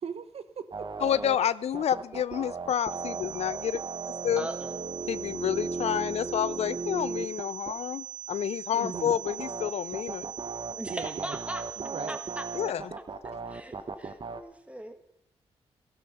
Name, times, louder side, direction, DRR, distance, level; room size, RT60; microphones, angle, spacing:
voice 1, 0.0-0.9 8.7-9.2 10.9-11.4 11.8-12.1, right 6 dB, 60° right, 11 dB, 0.9 m, -39 dB
sound 1, 0.7-1.4 1.7-7.7 8.9-14.4, right 4 dB, 45° right, 1.2 m, -36 dB
voice 2, 1.0-3.8 4.2-4.5 5.1-10.3 12.5-12.9, left 9 dB, 65° left, 18 dB, 0.4 m, -29 dB
sound 2, 2.7-12.7, right 9 dB, 85° right, 1.6 m, -41 dB
voice 3, 4.4-4.8 10.7-11.6 12.1-12.4 13.2-15.0, right 1 dB, 10° right, 6 dB, 2.1 m, -39 dB
13.0 x 13.0 x 5.5 m, 0.81 s
supercardioid pair, 45°, 12 cm